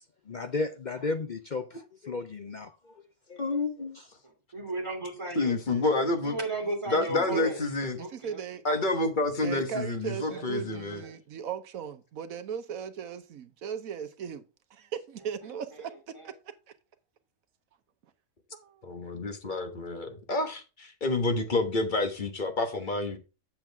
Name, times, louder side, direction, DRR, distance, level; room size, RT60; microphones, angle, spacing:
voice 1, 0.3-2.9 3.3-3.4, left 3 dB, 55° left, 0.5 m, -34 dB
voice 2, 3.4-4.0 5.3-6.4 6.9-8.0 8.6-11.0 18.8-23.2, left 2 dB, 35° left, 1.4 m, -29 dB
voice 3, 4.2-5.6 6.2-7.6 8.0-8.4 10.3-11.1 15.4-16.3, right 2 dB, 20° right, 2.6 m, -36 dB
voice 4, 5.5-5.9 6.6-6.7 7.0-7.5 8.0-8.6 9.4-14.4 14.7-16.5 18.5-18.8, right 7 dB, 70° right, 1.2 m, -38 dB
7.5 x 7.3 x 3.5 m
omnidirectional pair, 1.5 m